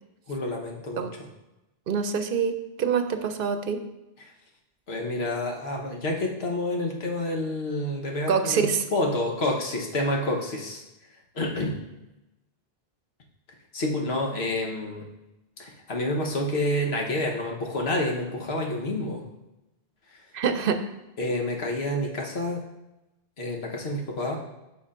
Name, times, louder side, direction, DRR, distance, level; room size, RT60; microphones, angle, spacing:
voice 1, 0.3-1.3 4.2-4.3 4.9-10.8 11.3-11.8 13.7-15.1 15.6-19.3 20.1-20.2 21.2-22.6 23.4-24.4, left 1 dB, 90° left, 0 dB, 1.4 m, -29 dB
voice 2, 1.9-3.8 8.3-8.8 20.3-20.8, right 6 dB, 65° right, 8 dB, 0.7 m, -25 dB
9.6 x 6.1 x 2.5 m, 0.97 s
omnidirectional pair, 1.0 m